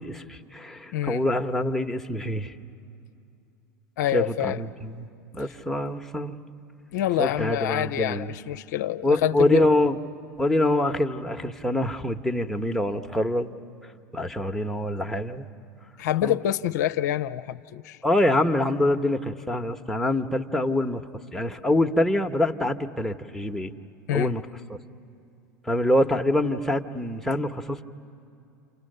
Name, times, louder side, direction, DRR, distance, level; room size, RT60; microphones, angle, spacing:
voice 1, 0.0-2.5 4.1-5.1 5.3-6.3 7.2-8.3 9.0-10.0 10.4-13.5 14.1-15.5 16.2-16.4 18.0-21.0 21.3-23.7 24.1-24.4 25.7-27.8, left 1 dB, 5° left, 3 dB, 1.2 m, -25 dB
voice 2, 0.9-1.2 4.0-4.6 6.9-9.6 16.0-18.0 24.1-24.3, left 12 dB, 70° left, 7 dB, 0.6 m, -26 dB
29.5 x 28.0 x 6.7 m, 2.5 s
hypercardioid pair, 85°, 10 cm